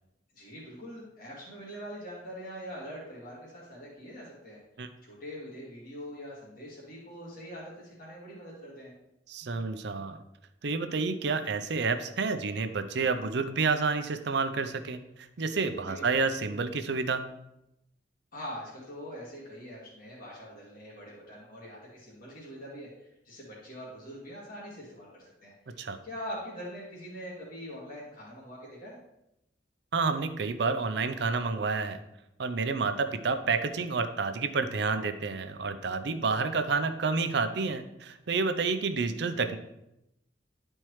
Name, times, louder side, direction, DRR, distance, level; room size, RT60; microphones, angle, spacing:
voice 1, 0.3-4.6 5.0-8.9 15.8-16.1 18.3-29.0, equal, 50° left, -6 dB, 1.9 m, -43 dB
voice 2, 9.3-10.2 10.6-15.0 15.4-17.3 25.8-26.0 29.9-32.0 32.4-39.6, right 4 dB, 70° right, 9 dB, 0.6 m, -29 dB
10.5 x 4.4 x 3.2 m, 0.85 s
head